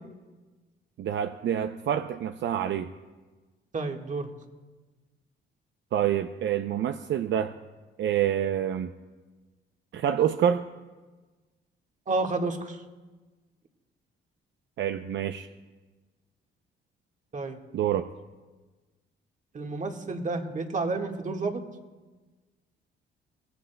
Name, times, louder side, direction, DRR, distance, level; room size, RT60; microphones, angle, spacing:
voice 1, 1.0-2.9 5.9-7.6 8.0-8.9 9.9-10.7 14.8-15.5 17.7-18.1, right 9 dB, 65° right, 8 dB, 0.6 m, -27 dB
voice 2, 3.7-4.3 12.1-12.8 17.3-17.6 19.5-21.6, right 3 dB, 40° right, 3 dB, 1.7 m, -30 dB
23.0 x 17.5 x 2.3 m, 1.3 s
cardioid pair, 90°, 20 cm